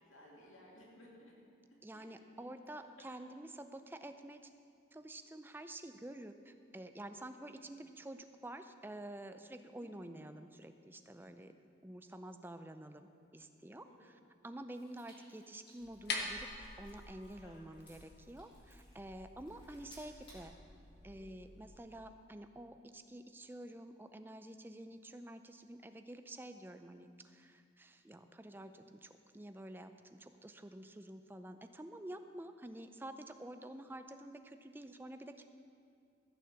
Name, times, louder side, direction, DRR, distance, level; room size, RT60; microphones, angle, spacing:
voice 1, 0.1-1.3 1.9-2.5 7.4-7.7 9.8-10.1 13.8-14.2 17.4-17.6 21.1-21.4, left 1 dB, 90° left, -4 dB, 2.5 m, -60 dB
voice 2, 1.8-4.5 4.9-11.6 11.8-13.1 13.3-16.5 16.8-20.5 21.0-35.4, right 1 dB, 10° right, 8 dB, 0.4 m, -49 dB
sound 1, 14.7-20.5, left 1 dB, 25° left, 2.8 m, -64 dB
sound 2, 15.8-21.8, left 3 dB, 55° left, 1.1 m, -47 dB
14.5 x 6.5 x 7.0 m, 2.4 s
head